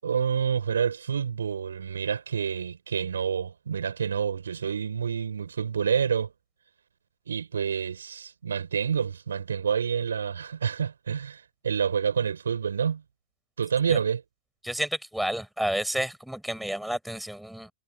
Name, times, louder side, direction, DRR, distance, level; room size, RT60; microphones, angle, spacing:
voice 1, 0.0-6.3 7.3-13.0 13.6-14.2, right 7 dB, 70° right, 6.4 m, -28 dB
voice 2, 14.6-17.7, right 1 dB, ahead, 6.1 m, -30 dB
figure-of-eight pair, 90°, 0 cm